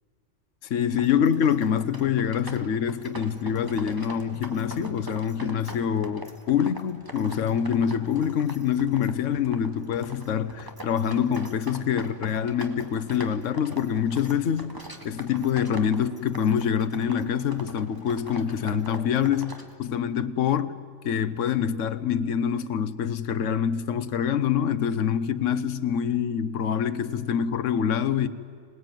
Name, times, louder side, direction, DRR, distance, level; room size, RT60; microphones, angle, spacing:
voice 1, 0.7-20.8 21.0-28.3, left 8 dB, 80° left, 1.2 m, -25 dB
sound 1, 0.8-19.7, right 1 dB, 15° right, 1.7 m, -43 dB
25.5 x 19.0 x 9.1 m
omnidirectional pair, 1.3 m